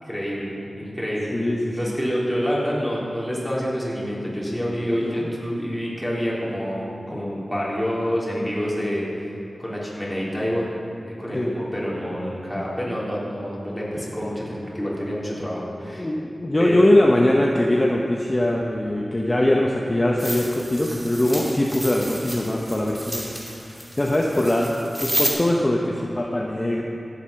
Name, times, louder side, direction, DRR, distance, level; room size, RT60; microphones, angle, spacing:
voice 1, 0.0-1.3 1.7-9.3 9.6-10.6 11.2-16.1 16.6-16.9, equal, 5° left, -6 dB, 3.7 m, -27 dB
voice 2, 1.3-1.9 5.0-5.3 11.3-11.5 14.8-26.8, left 1 dB, 30° left, -1 dB, 1.0 m, -22 dB
sound 1, 20.2-25.3, right 1 dB, 20° right, 2.5 m, -31 dB
15.5 x 8.1 x 5.9 m, 2.7 s
wide cardioid pair, 60°, 0 cm